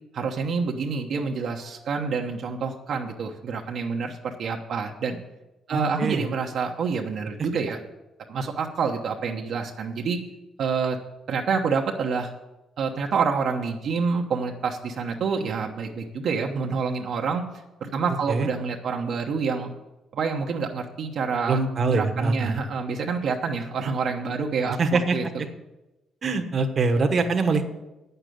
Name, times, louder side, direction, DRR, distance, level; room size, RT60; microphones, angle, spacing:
voice 1, 0.1-5.2 5.7-7.8 8.3-10.2 10.6-11.0 11.3-12.3 12.8-17.4 17.8-19.7 20.1-21.6 21.9-25.2, right 5 dB, 65° right, 1 dB, 1.0 m, -27 dB
voice 2, 5.7-6.2 18.1-18.5 21.5-22.5 24.8-25.2 26.2-27.6, right 3 dB, 45° right, 6 dB, 1.2 m, -24 dB
8.9 x 6.8 x 7.7 m, 0.99 s
cardioid pair, 90°, 0 cm